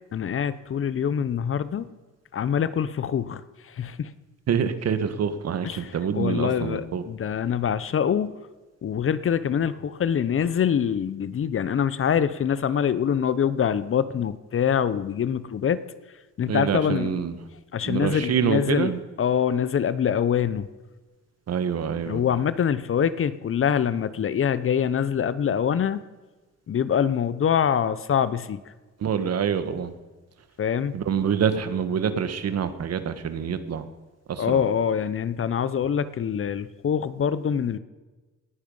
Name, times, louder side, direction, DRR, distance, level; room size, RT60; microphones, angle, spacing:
voice 1, 0.1-1.9 2.3-3.4 3.7-4.1 5.6-8.3 8.8-15.8 16.4-17.1 17.7-18.9 19.2-20.7 22.1-26.0 26.7-28.6 30.6-31.0 34.4-37.8, left 8 dB, 45° left, 15 dB, 0.8 m, -24 dB
voice 2, 4.5-7.0 16.5-17.4 17.8-19.0 21.5-22.2 29.0-29.9 30.9-33.8 34.3-34.6, right 7 dB, 55° right, 10 dB, 1.5 m, -26 dB
18.5 x 10.0 x 5.5 m, 1.2 s
cardioid pair, 90°, 30 cm